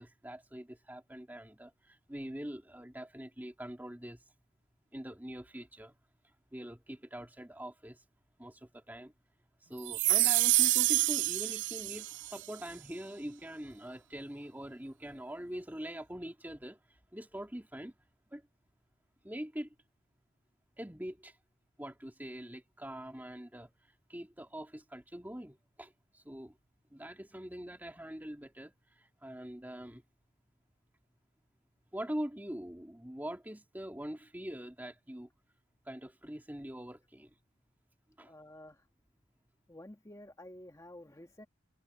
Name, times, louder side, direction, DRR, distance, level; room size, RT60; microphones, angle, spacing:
voice 1, 0.0-4.2 4.9-5.9 6.5-8.0 8.4-9.1 9.7-16.8 17.1-18.0 18.3-18.4 19.2-19.7 20.8-21.3 21.8-23.7 24.1-26.5 26.9-30.0 31.9-35.3 35.9-37.3 38.2-38.3, equal, 10° right, 2.1 m, -43 dB
sound 1, 9.9-12.4, right 19 dB, 60° right, 0.4 m, -27 dB
voice 2, 38.2-38.9 39.7-41.5, left 1 dB, 15° left, 1.6 m, -51 dB
head